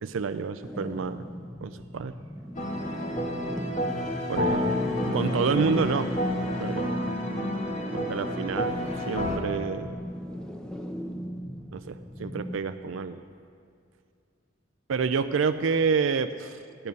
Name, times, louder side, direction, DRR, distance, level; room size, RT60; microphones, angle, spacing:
voice 1, 0.0-1.3 1.6-2.1 4.3-4.7 5.1-6.1 6.6-7.1 7.9-10.0 11.7-13.2 14.9-16.9, right 5 dB, 90° right, 10 dB, 0.4 m, -29 dB
sound 1, 0.6-12.6, equal, 5° left, 0.7 m, -40 dB
sound 2, 2.5-9.4, left 1 dB, 40° left, 1.6 m, -29 dB
15.5 x 10.5 x 5.4 m, 2.3 s
head